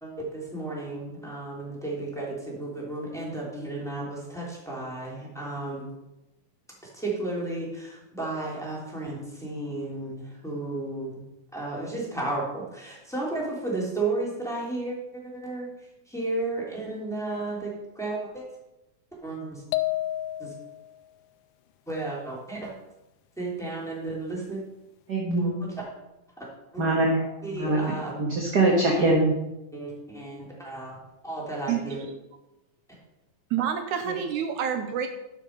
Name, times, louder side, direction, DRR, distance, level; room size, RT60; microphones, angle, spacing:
voice 1, 0.0-5.9 6.9-11.2 11.5-18.4 19.2-19.6 20.4-20.5 21.9-22.7 23.4-24.6 25.4-25.7 26.4-26.8 27.4-28.1 28.9-29.1 29.7-31.0 31.2-32.0, right 2 dB, ahead, -5 dB, 3.0 m, -33 dB
sound 1, 19.7-20.9, left 15 dB, 80° left, 2.0 m, -29 dB
voice 2, 25.1-25.4 26.8-27.8 28.2-29.3 34.1-34.2, right 2 dB, 40° right, -2 dB, 1.6 m, -23 dB
voice 3, 33.5-35.1, right 9 dB, 80° right, 7 dB, 2.0 m, -28 dB
12.0 x 7.2 x 5.3 m, 0.96 s
omnidirectional pair, 3.6 m